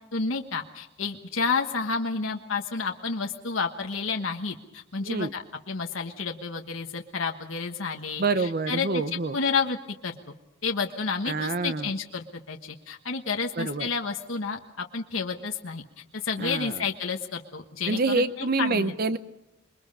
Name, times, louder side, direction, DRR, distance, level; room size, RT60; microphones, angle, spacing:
voice 1, 0.1-9.0 9.3-9.8 10.0-10.2 10.6-15.8 16.1-18.9, left 4 dB, 80° left, 3 dB, 1.4 m, -30 dB
voice 2, 5.0-5.3 8.2-9.4 11.3-11.9 13.6-13.9 16.4-16.8 17.9-19.2, right 3 dB, 45° right, 12 dB, 0.7 m, -27 dB
27.0 x 22.0 x 5.5 m, 0.91 s
head